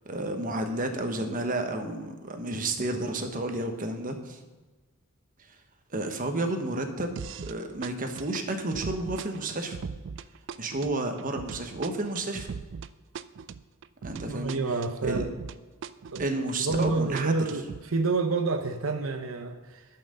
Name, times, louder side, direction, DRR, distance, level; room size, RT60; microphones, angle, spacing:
voice 1, 0.1-4.4 5.9-9.8 10.6-12.5 14.0-14.6 15.0-15.3 16.2-17.5, right 2 dB, 40° right, 6 dB, 1.1 m, -31 dB
sound 1, 7.2-7.6 7.8-15.6 15.8-17.8, right 5 dB, 65° right, 0.4 m, -39 dB
voice 2, 14.2-15.3 16.1-19.9, right 3 dB, 85° right, 6 dB, 0.8 m, -29 dB
11.0 x 5.9 x 6.7 m, 1.3 s
head